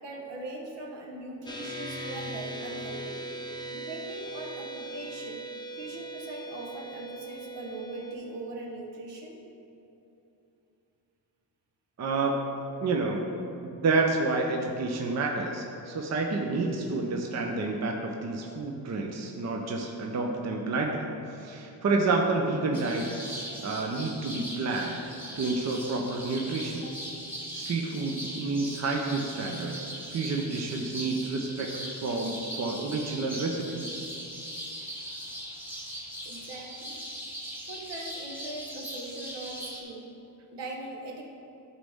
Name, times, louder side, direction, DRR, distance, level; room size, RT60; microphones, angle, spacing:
voice 1, 0.0-3.2 3.7-5.4 5.8-9.4 26.8-26.9 36.2-37.0 37.6-40.1 40.5-41.2, right 2 dB, 75° right, 0 dB, 1.4 m, -40 dB
sound 1, 1.5-8.2, right 2 dB, 10° left, 0.7 m, -39 dB
voice 2, 12.0-12.5 12.8-13.2 13.6-26.9 27.5-34.1, right 3 dB, 40° right, 1 dB, 0.7 m, -29 dB
sound 2, 22.7-39.8, equal, 5° right, 1.4 m, -40 dB
11.0 x 4.1 x 3.6 m, 2.8 s
cardioid pair, 105°, 43 cm